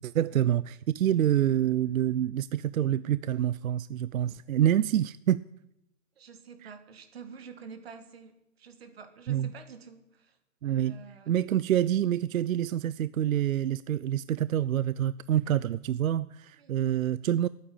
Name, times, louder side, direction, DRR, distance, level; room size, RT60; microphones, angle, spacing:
voice 1, 0.0-5.4 6.6-6.7 9.3-9.5 10.6-11.0 11.3-17.5, right 11 dB, 65° right, 0.5 m, -27 dB
voice 2, 6.2-10.4 10.6-11.3 16.6-16.7, right 6 dB, 40° right, 1.9 m, -48 dB
13.5 x 9.3 x 8.9 m
hypercardioid pair, 175°, 45 cm